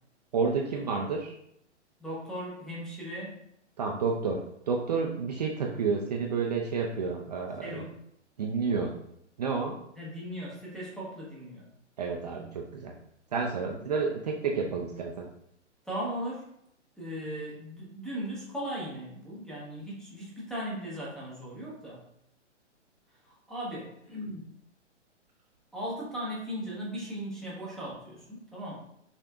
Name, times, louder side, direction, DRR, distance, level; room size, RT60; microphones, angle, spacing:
voice 1, 0.3-1.3 3.8-7.8 8.4-9.0 9.4-9.8 12.0-12.9 13.3-15.3, right 5 dB, 35° right, 0 dB, 0.4 m, -30 dB
voice 2, 2.0-3.4 7.6-8.0 10.0-11.7 15.8-16.4 17.0-22.0 23.2-24.5 25.7-28.8, equal, ahead, -6 dB, 0.7 m, -37 dB
6.0 x 2.6 x 2.3 m, 0.75 s
figure-of-eight pair, 120°, 36 cm